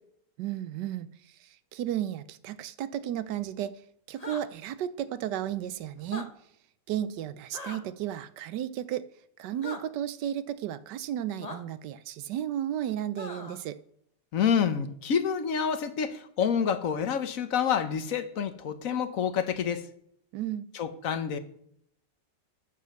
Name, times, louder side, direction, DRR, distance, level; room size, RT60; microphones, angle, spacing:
voice 1, 0.4-3.7 4.1-6.3 6.9-9.1 9.4-13.8 20.3-20.7, right 11 dB, 75° right, 15 dB, 1.3 m, -33 dB
sound 1, 4.1-4.4 6.0-6.3 7.5-7.8 9.6-9.8 11.4-11.6 13.2-13.6, left 3 dB, 25° left, 1.1 m, -39 dB
voice 2, 14.3-19.8 20.7-21.4, left 7 dB, 55° left, 10 dB, 1.2 m, -28 dB
9.3 x 7.2 x 6.4 m, 0.71 s
omnidirectional pair, 1.9 m